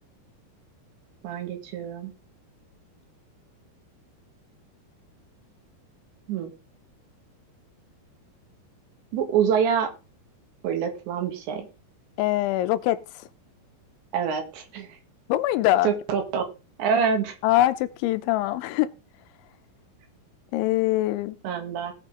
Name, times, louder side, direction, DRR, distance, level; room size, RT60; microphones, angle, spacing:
voice 1, 1.2-2.1 6.3-6.5 9.1-9.9 10.6-11.7 14.1-14.9 15.8-16.4 16.8-17.4 21.4-21.9, right 7 dB, 70° right, 4.0 m, -26 dB
voice 2, 12.2-13.2 15.3-15.9 17.4-18.9 20.5-21.4, left 15 dB, 80° left, 2.9 m, -23 dB
18.5 x 6.2 x 3.7 m
omnidirectional pair, 5.5 m